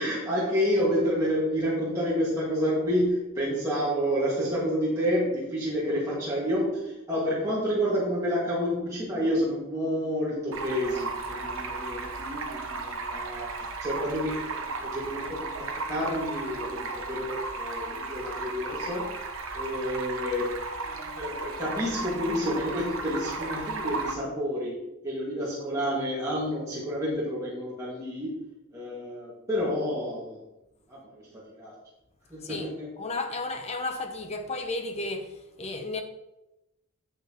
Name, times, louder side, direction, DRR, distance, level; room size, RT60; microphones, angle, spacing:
voice 1, 0.0-19.1 19.5-24.8 25.0-28.5 28.7-30.4 30.9-31.7 32.3-32.9, equal, 15° right, 1.9 m, -29 dB
Stream, 10.5-24.1, right 3 dB, 65° right, 1.0 m, -35 dB
voice 2, 33.0-36.0, left 2 dB, 30° left, 0.8 m, -33 dB
8.6 x 8.2 x 3.0 m
head